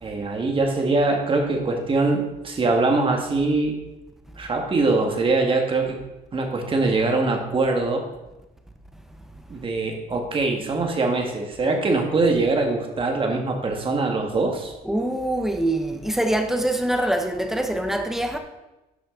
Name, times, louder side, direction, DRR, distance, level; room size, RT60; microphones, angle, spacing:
voice 1, 0.0-3.7 4.4-6.0 6.3-8.0 9.5-14.7, right 3 dB, 30° right, 1.7 m, -23 dB
voice 2, 14.8-18.4, right 1 dB, ahead, 1.0 m, -24 dB
11.0 x 6.1 x 3.8 m
cardioid pair, 110°, 17 cm